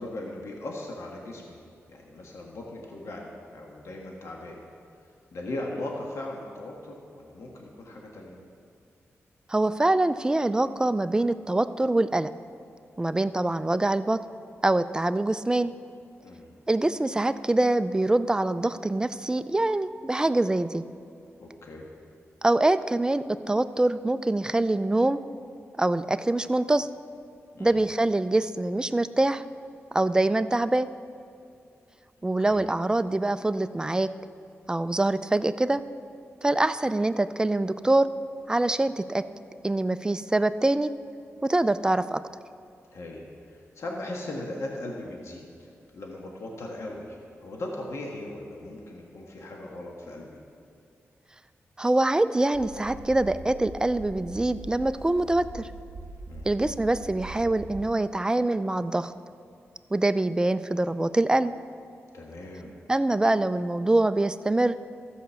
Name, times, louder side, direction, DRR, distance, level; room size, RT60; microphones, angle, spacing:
voice 1, 0.0-1.6 1.9-4.6 5.3-8.4 16.2-16.5 21.4-21.9 27.5-27.8 32.4-32.6 42.9-50.4 56.3-56.5 62.1-62.8, left 1 dB, 70° left, -1 dB, 1.4 m, -38 dB
voice 2, 9.5-12.3 13.0-14.2 14.6-15.7 16.7-20.8 22.4-25.2 25.8-26.9 27.6-29.4 29.9-30.9 32.2-34.1 34.7-35.8 36.4-38.1 38.5-39.3 39.6-40.9 41.4-42.2 51.8-55.7 56.4-59.1 59.9-61.5 62.9-64.8, right 2 dB, 15° right, 12 dB, 0.4 m, -24 dB
sound 1, 52.5-57.9, right 2 dB, 85° right, 0.9 m, -42 dB
14.0 x 5.1 x 6.9 m, 2.4 s
cardioid pair, 80°, 5 cm